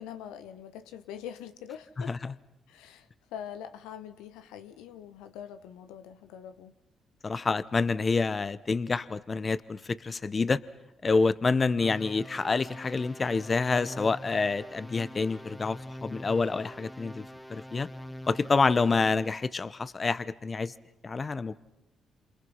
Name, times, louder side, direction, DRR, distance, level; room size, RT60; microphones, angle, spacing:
voice 1, 0.0-2.2 2.7-6.7, left 9 dB, 80° left, 10 dB, 1.1 m, -43 dB
voice 2, 7.2-10.6 11.0-17.2 17.5-17.9 18.3-20.7 21.0-21.5, left 4 dB, 35° left, 16 dB, 1.0 m, -27 dB
sound 1, 11.8-19.4, equal, 10° left, 1.5 m, -44 dB
28.0 x 28.0 x 5.6 m, 0.95 s
hypercardioid pair, 50°, 0 cm